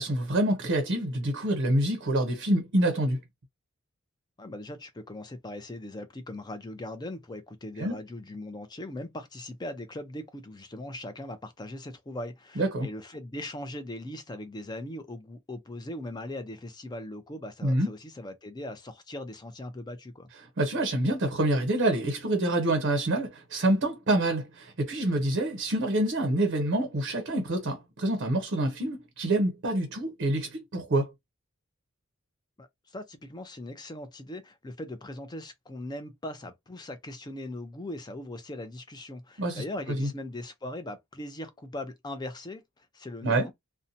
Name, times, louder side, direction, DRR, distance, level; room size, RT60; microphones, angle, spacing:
voice 1, 0.0-3.2 7.8-8.0 12.6-12.9 17.6-17.9 20.6-31.1 39.4-39.6 40.0-40.1 43.2-43.5, right 1 dB, 50° right, 0.6 m, -26 dB
voice 2, 4.4-20.3 32.6-43.5, left 1 dB, 20° left, 0.5 m, -40 dB
2.6 x 2.1 x 2.6 m
head